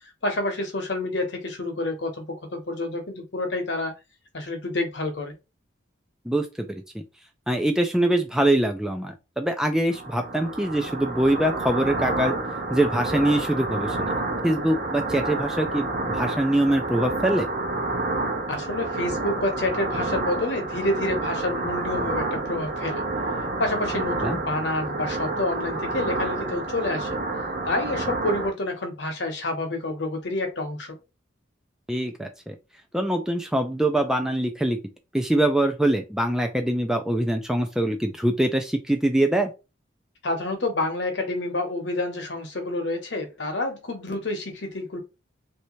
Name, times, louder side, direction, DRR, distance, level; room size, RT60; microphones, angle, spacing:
voice 1, 0.2-3.9 4.3-5.3 18.5-23.0 23.6-27.2 27.6-31.0 40.2-45.0, left 2 dB, 60° left, 5 dB, 0.9 m, -28 dB
voice 2, 6.3-7.0 7.5-12.4 12.7-17.5 24.2-24.4 31.9-32.5 32.9-34.8 35.1-39.5, right 1 dB, 5° right, 5 dB, 0.3 m, -24 dB
sound 1, 9.9-28.5, right 2 dB, 45° right, 0.8 m, -29 dB
3.2 x 2.7 x 3.0 m, 0.27 s
head